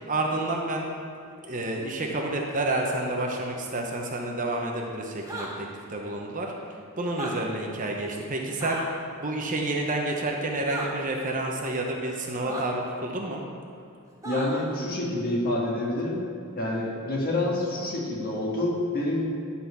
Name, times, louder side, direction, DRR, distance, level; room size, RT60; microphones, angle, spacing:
voice 1, 0.1-0.9 1.4-8.8 9.2-13.4, right 2 dB, 35° right, 0 dB, 0.9 m, -29 dB
sound 1, 5.2-5.5 7.1-7.3 8.6-8.9 10.7-10.9 12.5-12.6 14.2-14.7, right 1 dB, 15° right, 1.3 m, -34 dB
voice 2, 14.2-16.2 16.6-19.2, left 1 dB, 45° left, -3 dB, 1.7 m, -27 dB
10.5 x 4.2 x 5.5 m, 2.5 s
head